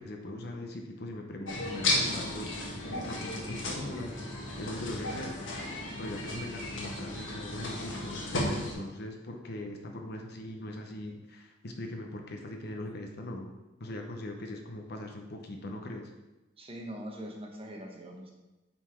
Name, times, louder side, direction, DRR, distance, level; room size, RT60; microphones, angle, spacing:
voice 1, 0.0-4.1 4.6-13.5 13.8-16.1, left 1 dB, 55° left, 3 dB, 0.8 m, -41 dB
sound 1, 1.5-8.7, left 1 dB, 75° left, 1.5 m, -34 dB
voice 2, 16.6-18.3, equal, 30° right, 1 dB, 1.1 m, -42 dB
8.1 x 4.1 x 4.4 m, 1.0 s
head